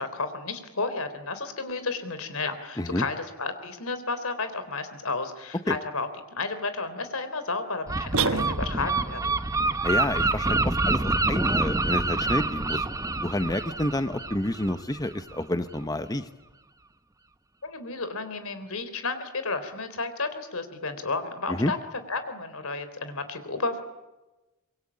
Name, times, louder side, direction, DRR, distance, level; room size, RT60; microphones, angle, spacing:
voice 1, 0.0-9.3 17.6-21.8 22.1-23.8, left 3 dB, 90° left, 10 dB, 3.7 m, -32 dB
Gull seagull, 7.9-15.4, right 2 dB, 15° right, 0.8 m, -27 dB
sound 1, 8.1-9.0, right 4 dB, 80° right, 1.4 m, -27 dB
voice 2, 9.8-12.8 13.2-16.3 21.5-21.7, left 1 dB, 20° left, 10 dB, 0.9 m, -29 dB
25.5 x 23.5 x 8.7 m, 1.1 s
head